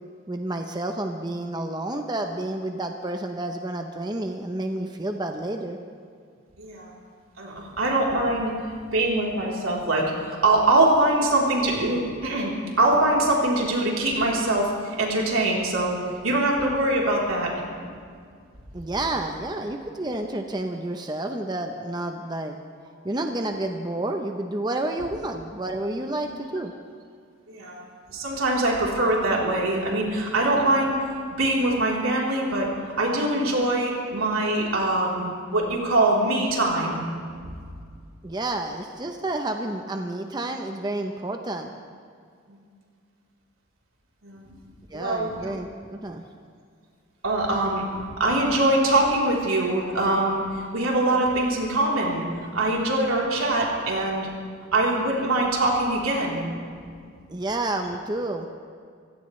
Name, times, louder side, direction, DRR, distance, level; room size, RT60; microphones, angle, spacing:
voice 1, 0.3-5.8 18.7-22.6 23.0-26.7 38.2-41.7 44.9-46.2 57.3-58.5, right 2 dB, 20° right, 4 dB, 0.7 m, -30 dB
voice 2, 6.6-6.9 7.4-8.5 8.9-16.0 16.2-17.5 17.8-17.9 26.2-26.3 27.5-31.0 31.4-32.7 33.0-37.0 44.2-44.5 44.9-45.5 47.2-50.4 50.7-54.3 54.7-56.4, right 2 dB, 85° right, -3 dB, 3.7 m, -23 dB
25.5 x 16.5 x 3.3 m, 2.1 s
head